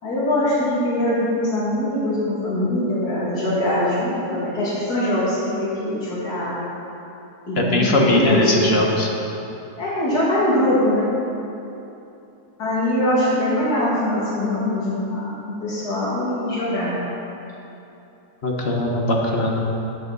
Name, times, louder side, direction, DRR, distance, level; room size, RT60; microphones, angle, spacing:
voice 1, 0.0-6.6 7.5-8.7 9.8-11.1 12.6-17.0, left 1 dB, 75° left, -8 dB, 2.9 m, -22 dB
voice 2, 7.5-9.1 18.4-19.7, left 1 dB, 45° left, -1 dB, 1.3 m, -20 dB
12.0 x 7.9 x 4.1 m, 2.9 s
omnidirectional pair, 1.7 m